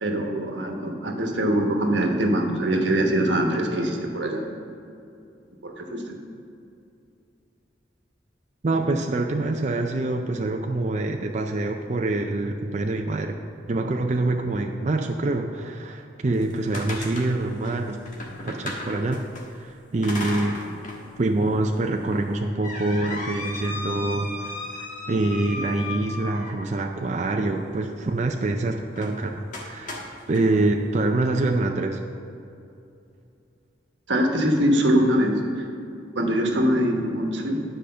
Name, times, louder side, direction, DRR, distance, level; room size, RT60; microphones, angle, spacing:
voice 1, 0.0-4.5 5.6-6.2 34.1-35.7 36.1-37.6, right 1 dB, 90° right, 2 dB, 1.2 m, -23 dB
voice 2, 8.6-13.4 13.7-18.0 18.4-19.2 19.5-20.6 21.2-30.0 30.3-32.0, right 2 dB, 40° right, 3 dB, 0.5 m, -25 dB
sound 1, 16.3-19.4 20.0-21.0 21.4-21.5 22.1-26.8 28.9-29.1 29.5-30.4, left 2 dB, 45° left, 1.4 m, -35 dB
10.0 x 5.0 x 6.7 m, 2.6 s
head